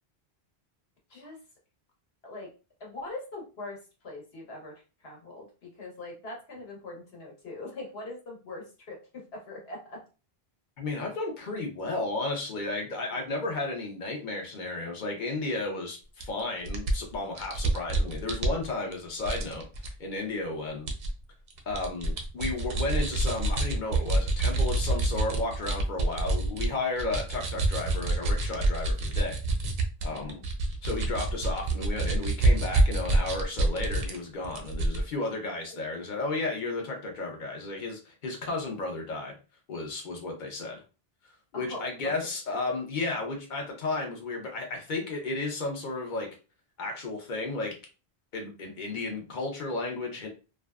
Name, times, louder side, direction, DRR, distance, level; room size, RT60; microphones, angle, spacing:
voice 1, 2.8-10.0 13.1-13.3 30.1-30.5 35.7-35.8 41.5-42.1 48.6-49.0, left 2 dB, 75° left, -1 dB, 1.1 m, -42 dB
voice 2, 10.8-20.9 21.7-29.4 30.0-30.4 30.8-39.4 39.7-40.8 41.5-46.3 46.8-47.8 48.3-50.3, left 2 dB, 55° left, 1 dB, 0.8 m, -33 dB
sound 1, 16.2-16.3 16.7-18.9 19.2-19.9 20.9-21.1 21.5-26.7 27.0-34.2 34.4-35.0, right 2 dB, 55° right, 0.5 m, -27 dB
2.6 x 2.2 x 2.3 m, 0.32 s
omnidirectional pair, 1.1 m